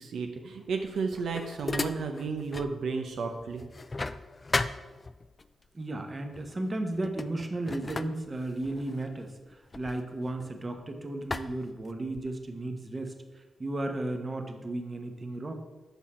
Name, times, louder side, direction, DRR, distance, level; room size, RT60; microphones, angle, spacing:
voice 1, 0.0-3.6, right 4 dB, 80° right, 3 dB, 0.6 m, -33 dB
sound 1, 0.8-2.8 3.1-5.5 6.3-6.6 6.9-10.8 11.3-12.4, left 3 dB, 35° left, 0.3 m, -36 dB
voice 2, 5.7-15.5, right 2 dB, 30° right, 5 dB, 1.0 m, -34 dB
7.1 x 5.6 x 4.3 m, 1.2 s
cardioid pair, 70°, 0 cm